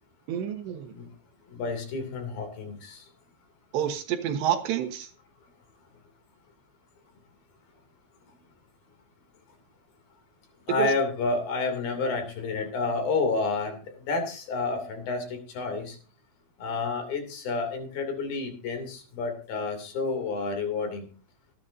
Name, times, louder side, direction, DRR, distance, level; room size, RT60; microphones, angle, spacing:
voice 1, 0.3-0.9 3.7-5.1 10.8-10.9, right 10 dB, 75° right, 7 dB, 3.3 m, -28 dB
voice 2, 1.5-3.0 10.7-13.8 14.1-16.0 16.6-21.1, left 3 dB, 55° left, 4 dB, 4.4 m, -30 dB
26.0 x 10.0 x 2.7 m, 0.36 s
omnidirectional pair, 5.3 m